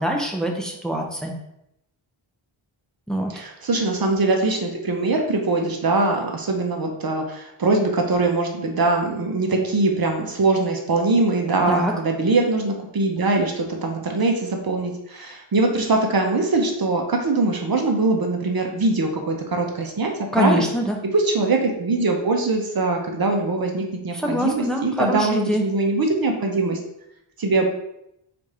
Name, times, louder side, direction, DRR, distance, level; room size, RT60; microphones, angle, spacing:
voice 1, 0.0-1.4 3.1-3.3 11.7-11.9 20.3-21.0 24.1-25.6, equal, ahead, 1 dB, 0.6 m, -24 dB
voice 2, 3.3-20.6 21.1-26.8 27.4-27.6, right 3 dB, 50° right, 2 dB, 0.7 m, -22 dB
4.2 x 2.5 x 4.8 m, 0.81 s
wide cardioid pair, 130°, 47 cm